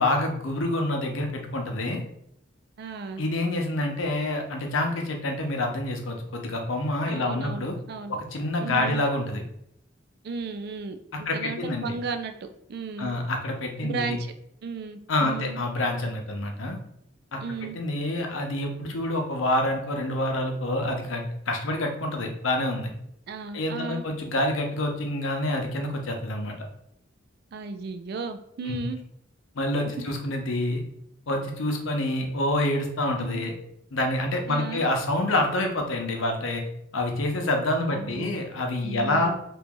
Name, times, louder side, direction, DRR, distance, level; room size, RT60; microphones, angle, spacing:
voice 1, 0.0-2.0 3.2-7.7 8.1-9.4 11.3-12.0 13.0-14.1 15.1-16.8 17.3-22.9 23.5-26.6 28.7-28.8 29.6-30.8 31.3-33.5 33.9-36.6 36.9-39.3, left 1 dB, 80° left, 3 dB, 0.7 m, -27 dB
voice 2, 2.8-3.2 7.1-8.2 8.6-9.0 10.2-13.1 13.8-14.3 14.6-15.6 17.4-17.8 23.3-24.0 27.5-29.0 33.2-33.5 34.5-34.9 37.7-38.4 38.8-39.4, right 4 dB, 55° right, 8 dB, 0.3 m, -35 dB
2.9 x 2.5 x 3.6 m, 0.75 s
head